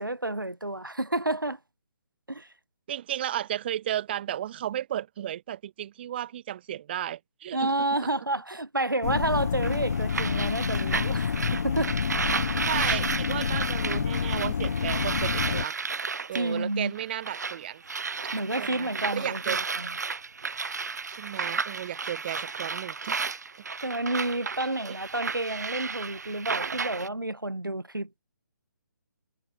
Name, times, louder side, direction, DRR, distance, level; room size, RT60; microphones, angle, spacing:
voice 1, 0.0-1.6 2.3-2.5 7.5-11.9 16.3-16.9 18.3-19.9 23.8-28.2, right 2 dB, 90° right, 1.0 m, -30 dB
voice 2, 2.9-7.7 8.0-8.1 12.7-15.8 16.3-17.8 18.6-19.6 21.2-23.2 24.8-25.0, right 11 dB, 30° right, 0.7 m, -34 dB
sound 1, 9.0-15.7, left 6 dB, 50° left, 1.1 m, -28 dB
sound 2, 9.6-17.6 17.8-27.1, right 5 dB, 55° right, 7.6 m, -33 dB
figure-of-eight pair, 140°, 11 cm